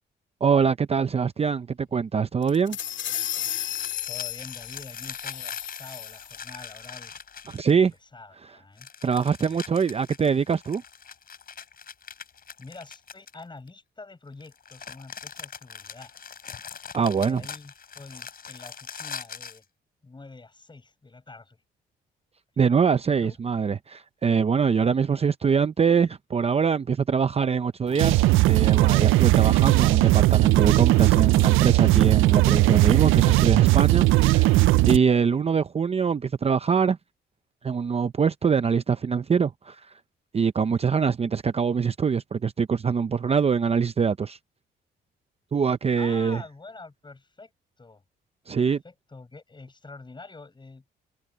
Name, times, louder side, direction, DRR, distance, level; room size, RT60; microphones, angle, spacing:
voice 1, 0.4-2.8 7.5-7.9 9.0-10.8 16.9-17.4 22.6-34.6 34.8-37.0 37.6-39.8 40.3-44.4 45.5-46.4 48.5-48.8, right 6 dB, 30° right, 0.6 m, -23 dB
sound 1, 2.4-6.4, left 12 dB, 70° left, 2.2 m, -33 dB
sound 2, 3.6-7.9 8.8-13.7 14.4-19.6, left 7 dB, 50° left, 4.9 m, -42 dB
voice 2, 4.1-7.1 7.5-8.9 9.4-9.6 12.6-16.1 16.9-19.6 20.0-21.6 22.9-23.4 46.0-47.5 47.8-48.0 48.5-50.8, left 3 dB, 25° left, 7.7 m, -46 dB
sound 3, 27.9-35.0, right 19 dB, 85° right, 0.4 m, -18 dB
cardioid pair, 90°, 20 cm